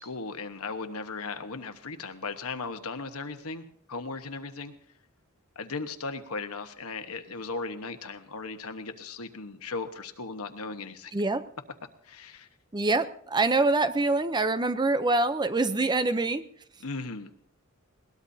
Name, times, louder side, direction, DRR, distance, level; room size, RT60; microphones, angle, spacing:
voice 1, 0.0-4.7 5.5-11.1 12.0-12.5 16.8-17.3, left 4 dB, 70° left, 8 dB, 1.2 m, -37 dB
voice 2, 11.1-11.4 12.7-16.4, right 3 dB, 20° right, 12 dB, 0.6 m, -25 dB
21.5 x 18.5 x 2.7 m, 0.65 s
head